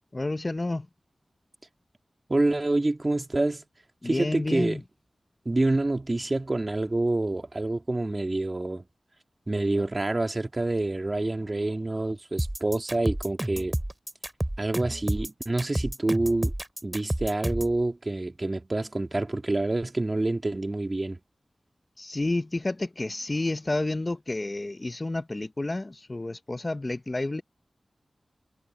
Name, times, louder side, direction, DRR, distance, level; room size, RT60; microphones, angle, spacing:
voice 1, 0.1-0.9 4.0-4.8 22.0-27.4, left 2 dB, 30° left, 0.6 m, -30 dB
voice 2, 2.3-3.6 4.0-4.8 5.4-8.9 9.5-13.8 14.6-16.5 16.8-21.2, right 2 dB, 30° right, 2.6 m, -27 dB
sound 1, 12.4-17.8, right 1 dB, 15° right, 2.3 m, -30 dB
wide cardioid pair, 85°, 0 cm